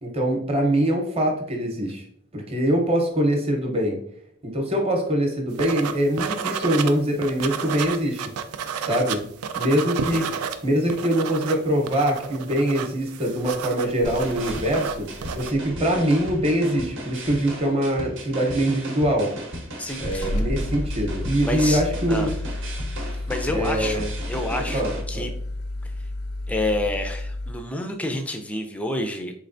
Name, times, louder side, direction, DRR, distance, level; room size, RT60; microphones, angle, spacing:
voice 1, 0.0-2.0 2.3-4.0 4.4-8.2 8.9-9.2 9.5-15.1 15.3-19.3 20.0-22.3 23.5-24.1 24.7-25.3, right 1 dB, 25° right, 1 dB, 0.8 m, -23 dB
sound 1, 5.6-6.9 7.2-10.6 10.8-15.5, right 7 dB, 75° right, 0.3 m, -31 dB
sound 2, 13.8-16.6 17.1-17.5 18.4-18.5 19.3-19.4 19.9-27.5, left 1 dB, 70° left, 0.4 m, -32 dB
sound 3, 14.0-25.0, right 1 dB, 60° right, 0.8 m, -36 dB
voice 2, 19.8-20.3 21.4-22.3 23.3-25.3 25.8-25.9 26.5-29.3, left 1 dB, 5° left, 4 dB, 0.3 m, -29 dB
4.2 x 3.2 x 2.5 m, 0.66 s
head